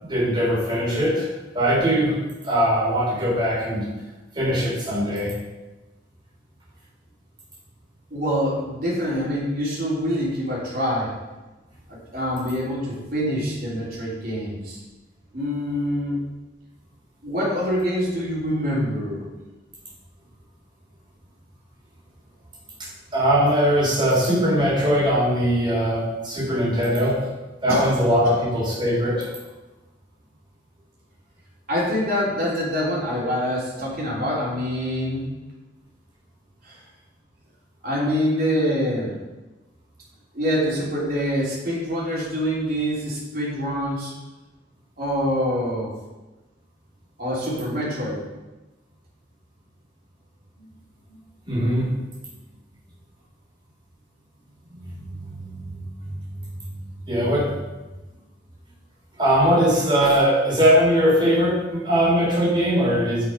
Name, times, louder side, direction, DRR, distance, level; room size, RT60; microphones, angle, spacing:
voice 1, 0.0-2.1 2.4-3.9 4.4-5.3 23.1-27.2 27.6-29.3 51.5-51.9 54.8-55.7 57.1-57.5 59.2-63.2, equal, 25° right, -6 dB, 3.6 m, -21 dB
voice 2, 8.1-11.1 12.1-14.8 15.3-16.2 17.2-19.3 27.7-27.9 28.2-28.4 31.7-35.2 36.6-36.8 37.8-39.2 40.3-44.1 45.0-45.9 47.2-48.2 51.1-51.2, equal, 50° right, -7 dB, 3.5 m, -25 dB
9.6 x 5.9 x 5.2 m, 1.1 s
head